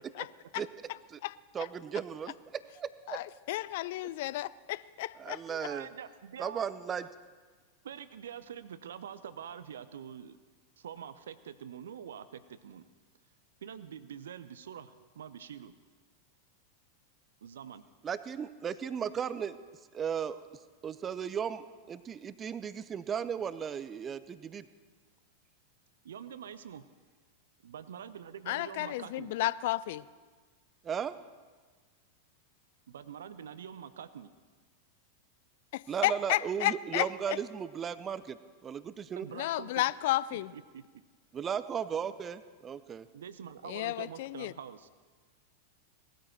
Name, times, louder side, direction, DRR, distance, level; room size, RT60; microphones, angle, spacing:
voice 1, 1.5-3.2 5.2-5.9 6.4-7.1 18.0-19.6 19.9-24.7 30.8-31.1 35.9-39.3 41.3-43.1, right 7 dB, 25° right, 15 dB, 0.6 m, -36 dB
voice 2, 3.1-5.4 28.5-30.0 35.7-37.4 39.3-40.5 43.7-44.5, left 16 dB, 50° left, 19 dB, 0.3 m, -32 dB
voice 3, 5.5-6.6 7.8-10.4 10.8-12.8 13.6-15.7 17.4-17.8 26.0-26.8 27.6-29.3 32.9-34.3 39.2-39.8 40.3-40.8 43.1-44.9, right 8 dB, 65° right, 14 dB, 0.6 m, -45 dB
18.5 x 13.0 x 4.5 m, 1.4 s
figure-of-eight pair, 90°, 0 cm